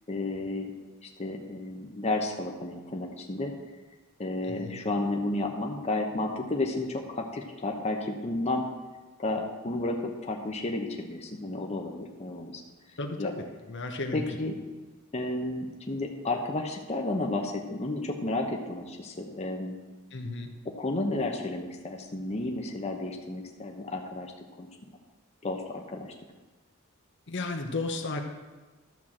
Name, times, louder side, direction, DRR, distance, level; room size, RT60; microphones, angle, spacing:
voice 1, 0.1-0.7 1.0-3.5 4.2-8.7 9.2-12.6 12.9-13.3 14.1-14.6 15.1-19.7 20.8-24.3 24.6-24.9 25.4-26.1, left 2 dB, 30° left, 2 dB, 0.9 m, -32 dB
voice 2, 4.4-4.8 13.0-14.2 20.1-20.5 27.3-28.2, left 2 dB, 55° left, 4 dB, 1.0 m, -34 dB
12.0 x 4.7 x 7.3 m, 1.3 s
head